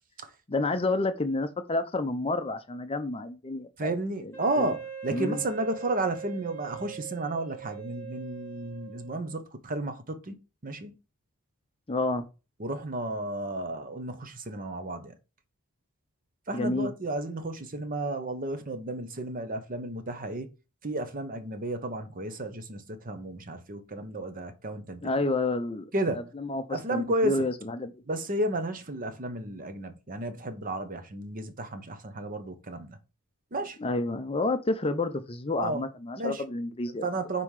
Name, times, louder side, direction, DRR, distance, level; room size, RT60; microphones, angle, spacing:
voice 1, 0.5-3.9 4.2-4.7 5.1-5.4 11.9-12.2 16.5-16.9 25.0-25.9 26.4-27.9 33.8-37.0, left 2 dB, 25° left, 0.6 m, -29 dB
voice 2, 3.8-10.3 10.6-10.9 12.6-15.1 16.5-20.5 20.8-25.1 25.9-26.3 26.7-27.3 28.1-33.0 33.5-33.8 35.6-35.8 36.2-36.4 37.0-37.4, right 2 dB, 40° right, 0.9 m, -32 dB
Wind instrument woodwind instrument, 4.3-9.4, right 8 dB, 10° left, 2.2 m, -42 dB
5.5 x 4.2 x 4.8 m
head